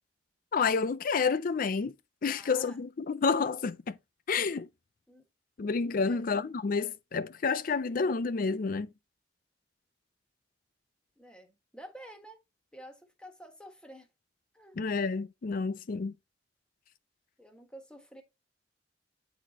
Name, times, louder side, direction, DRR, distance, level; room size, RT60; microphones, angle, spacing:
voice 1, 0.5-1.9 2.2-3.9 4.3-4.7 5.6-8.9 14.8-16.1, left 5 dB, 50° left, 0.4 m, -29 dB
voice 2, 2.3-2.8 5.1-5.2 6.0-6.2 11.2-12.4 12.7-14.1 14.5-14.7 17.4-18.2, right 1 dB, 5° left, 1.4 m, -50 dB
9.2 x 4.1 x 2.9 m
head